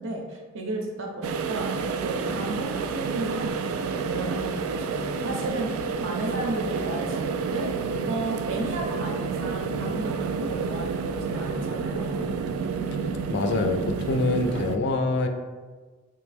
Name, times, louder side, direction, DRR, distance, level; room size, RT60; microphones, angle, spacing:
voice 1, 0.0-1.7 2.0-7.7 8.1-12.3, right 1 dB, 60° right, 1 dB, 0.7 m, -34 dB
sound 1, 1.2-14.8, right 5 dB, 90° right, 0.3 m, -29 dB
voice 2, 13.3-15.3, left 3 dB, 55° left, 6 dB, 0.3 m, -25 dB
3.5 x 3.0 x 3.4 m, 1.4 s
head